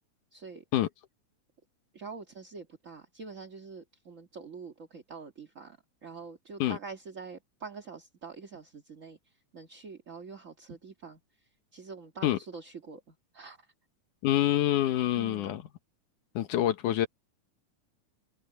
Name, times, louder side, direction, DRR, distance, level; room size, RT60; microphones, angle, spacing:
voice 1, 0.3-0.6 1.9-9.2 9.5-11.2 11.7-13.7 15.1-15.6, right 4 dB, 35° right, 1.5 m, -45 dB
voice 2, 14.2-15.6 16.4-17.1, left 13 dB, 85° left, 2.7 m, -26 dB
omnidirectional pair, 3.5 m